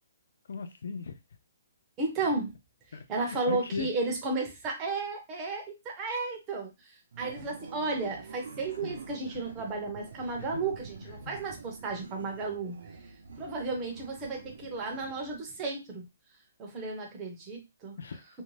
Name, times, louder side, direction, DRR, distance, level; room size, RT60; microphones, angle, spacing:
voice 1, 0.5-1.2 2.2-2.3 2.9-3.9 8.6-9.0 9.3-9.5 10.4-10.7 11.2-11.4 18.0-18.3, left 4 dB, 65° left, 9 dB, 0.4 m, -39 dB
voice 2, 2.0-2.5 3.1-6.7 7.2-12.7 13.4-16.0 16.6-17.9, right 3 dB, 15° right, 1 dB, 0.6 m, -33 dB
sound 1, 7.1-15.7, right 4 dB, 65° right, 0.6 m, -47 dB
2.5 x 2.1 x 3.1 m, 0.23 s
hypercardioid pair, 175°, 0 cm